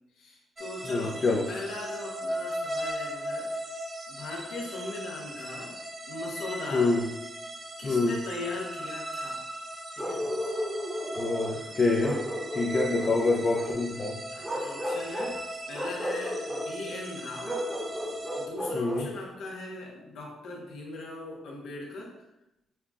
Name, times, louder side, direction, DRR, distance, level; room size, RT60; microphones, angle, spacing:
voice 1, 0.2-1.2 1.5-3.5 4.1-5.8 6.1-7.0 7.8-9.4 9.9-10.3 11.5-11.8 12.1-12.3 13.0-13.3 14.3-17.6 18.4-22.1, left 2 dB, 85° left, -2 dB, 0.9 m, -39 dB
sound 1, 0.6-18.5, right 1 dB, 25° right, 0.4 m, -38 dB
voice 2, 0.8-1.5 6.7-7.0 7.8-8.2 11.2-12.2 12.5-14.2 18.7-19.1, left 3 dB, 40° left, -2 dB, 0.5 m, -26 dB
Bark, 10.0-11.6 12.0-13.8 14.4-15.4 15.7-16.7 17.4-19.1, equal, 5° right, 0.9 m, -33 dB
5.6 x 2.3 x 2.4 m, 0.89 s
cardioid pair, 105°, 0 cm